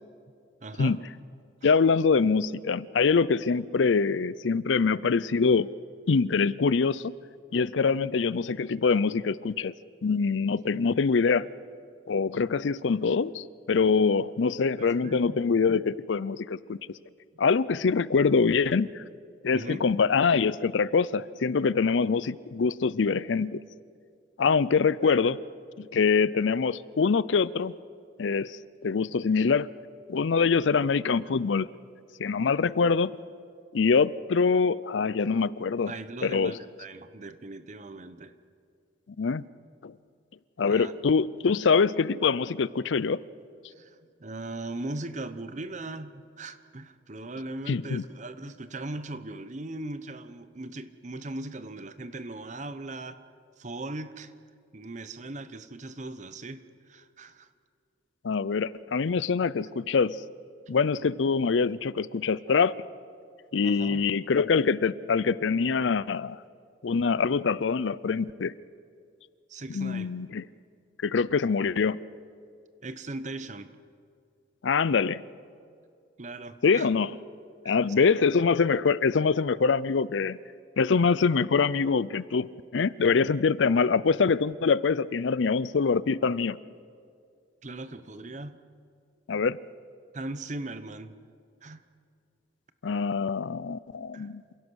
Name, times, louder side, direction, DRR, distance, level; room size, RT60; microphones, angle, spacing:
voice 1, 0.6-1.0 1.6-1.7 7.9-8.1 10.7-10.8 14.8-15.4 19.5-19.8 25.0-25.3 32.4-32.8 35.8-38.3 40.6-40.9 43.7-53.2 53.6-54.3 54.7-57.5 63.6-64.0 69.5-70.1 72.8-73.7 76.2-76.9 77.6-78.2 87.6-88.6 90.1-91.2 91.6-91.8 94.1-94.3, right 2 dB, 40° right, 12 dB, 0.9 m, -39 dB
voice 2, 1.6-5.7 6.1-7.1 7.5-9.7 10.0-11.5 12.1-16.8 17.4-19.0 19.4-23.6 24.4-25.4 25.8-27.7 28.2-29.7 30.1-31.7 32.2-33.1 33.7-35.9 36.2-36.6 39.2-39.4 39.8-39.9 40.6-43.2 47.7-48.0 58.2-60.2 60.7-62.8 63.5-66.4 66.8-68.5 69.7-70.4 71.0-72.0 74.6-75.2 76.6-77.1 77.7-80.4 80.8-86.6 89.3-89.6 92.8-94.4, left 5 dB, 80° left, 19 dB, 0.5 m, -24 dB
27.5 x 16.5 x 6.3 m, 2.3 s
head